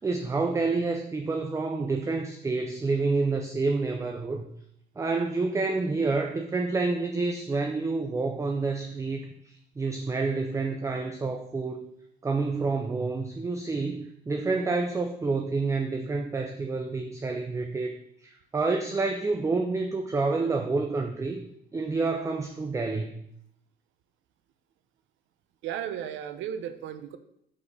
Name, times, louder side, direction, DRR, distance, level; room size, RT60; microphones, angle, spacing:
voice 1, 0.0-4.5 5.0-11.9 12.2-21.5 21.7-23.2, right 3 dB, 15° right, 5 dB, 0.5 m, -28 dB
voice 2, 25.6-27.2, right 9 dB, 80° right, 11 dB, 0.7 m, -34 dB
5.5 x 4.2 x 5.3 m, 0.73 s
cardioid pair, 130°, 19 cm